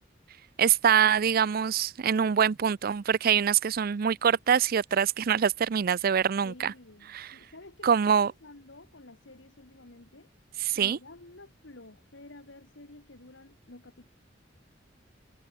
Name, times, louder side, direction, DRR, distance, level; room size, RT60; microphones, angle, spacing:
voice 1, 0.6-6.7 7.1-7.3 7.8-8.3 10.6-11.0, right 8 dB, 50° right, 0.4 m, -24 dB
voice 2, 6.4-10.3 10.7-14.1, left 2 dB, 90° left, 2.4 m, -50 dB
head